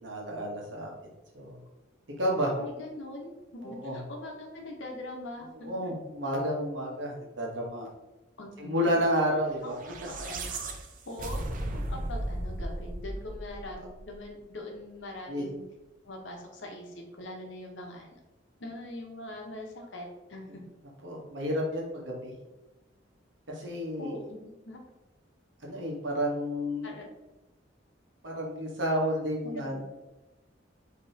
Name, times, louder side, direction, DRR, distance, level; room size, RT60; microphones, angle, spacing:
voice 1, 0.0-0.9 1.3-1.6 2.2-2.5 3.6-4.0 5.6-7.9 8.6-9.7 15.3-15.5 21.0-22.3 23.5-24.2 25.6-27.0 28.2-29.8, equal, 70° right, -2 dB, 1.2 m, -30 dB
voice 2, 2.6-5.9 8.4-9.0 9.6-10.5 11.1-15.6 16.0-18.2 18.6-20.6 24.0-24.8 26.8-27.1 29.4-29.8, left 1 dB, 70° left, 1 dB, 0.9 m, -42 dB
sound 1, 9.6-14.1, right 1 dB, 45° right, 0.5 m, -36 dB
5.0 x 3.0 x 2.8 m, 1.0 s
head